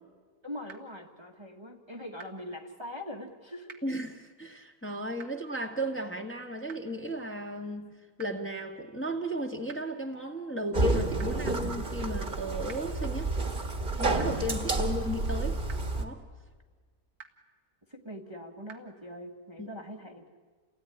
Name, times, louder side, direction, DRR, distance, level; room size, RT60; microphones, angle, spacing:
voice 1, 0.4-3.7 17.9-20.3, left 1 dB, 20° right, 1.6 m, -42 dB
sound 1, 0.7-0.8 2.2-2.3 3.7-3.8 5.2-5.3 6.7-6.8 8.2-8.3 9.7-9.8 11.2-11.3 12.7-12.8 14.2-14.3 15.7-15.8 17.2-17.3 18.7-18.8, right 7 dB, 75° right, 2.2 m, -45 dB
voice 2, 3.8-7.9 8.2-13.3 14.0-15.6 16.0-16.2 19.6-19.7, equal, 10° left, 1.7 m, -35 dB
sound 2, 10.7-16.0, right 3 dB, 35° right, 1.9 m, -30 dB
29.0 x 18.0 x 10.0 m
omnidirectional pair, 1.6 m